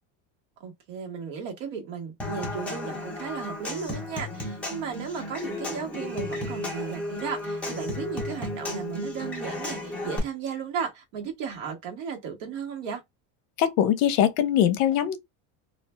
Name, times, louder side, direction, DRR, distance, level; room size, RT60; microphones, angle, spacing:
voice 1, 0.6-13.0, right 6 dB, 85° right, 1.2 m, -35 dB
Human voice / Acoustic guitar / Percussion, 2.2-10.2, left 1 dB, 5° left, 0.5 m, -34 dB
voice 2, 13.6-15.2, left 10 dB, 60° left, 0.6 m, -22 dB
2.4 x 2.2 x 3.1 m
cardioid pair, 175°, 38 cm